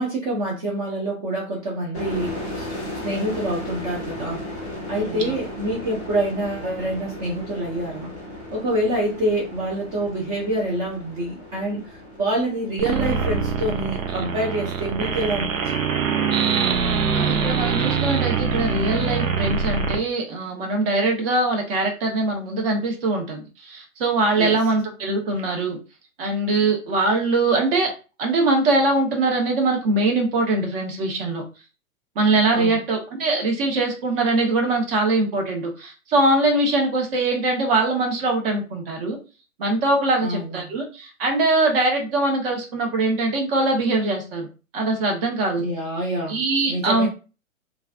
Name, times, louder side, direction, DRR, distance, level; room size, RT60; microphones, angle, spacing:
voice 1, 0.0-4.4 4.9-8.1 8.5-11.9 12.2-15.5 15.8-15.9 24.3-24.5 32.5-32.8 40.2-40.7 45.6-46.4 46.7-47.1, right 1 dB, 25° right, -4 dB, 0.7 m, -26 dB
sound 1, 1.9-15.4, left 1 dB, 5° left, 0.3 m, -36 dB
voice 2, 4.9-5.4 17.1-25.8 26.2-27.9 28.2-31.4 32.1-39.2 39.6-44.5 44.7-45.7 46.3-47.1, right 2 dB, 45° right, 2 dB, 1.1 m, -22 dB
sound 2, 12.8-20.0, right 5 dB, 70° right, 0.7 m, -23 dB
3.1 x 2.4 x 2.4 m, 0.33 s
hypercardioid pair, 125°, 42 cm